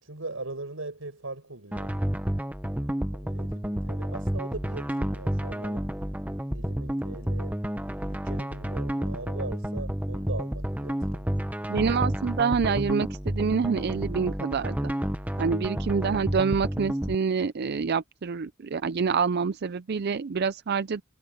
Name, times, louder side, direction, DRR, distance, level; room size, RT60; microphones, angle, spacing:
voice 1, 0.0-2.0 3.1-6.0 6.5-7.7 8.0-11.3, right 2 dB, 85° right, 5.4 m, -40 dB
sound 1, 1.7-17.2, equal, 10° right, 1.0 m, -30 dB
voice 2, 11.7-14.9 15.4-21.0, right 5 dB, 55° right, 0.5 m, -27 dB
head